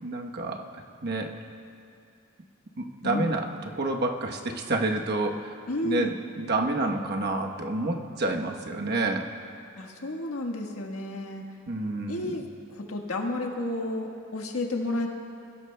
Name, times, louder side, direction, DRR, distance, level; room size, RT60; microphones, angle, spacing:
voice 1, 0.0-1.3 2.8-5.6 5.8-9.3 11.7-12.3, right 2 dB, 50° right, 2 dB, 1.0 m, -29 dB
voice 2, 3.0-3.4 5.7-6.2 9.8-11.4 12.1-15.1, left 2 dB, 80° left, 1 dB, 1.5 m, -31 dB
25.0 x 16.0 x 2.2 m, 2.5 s
head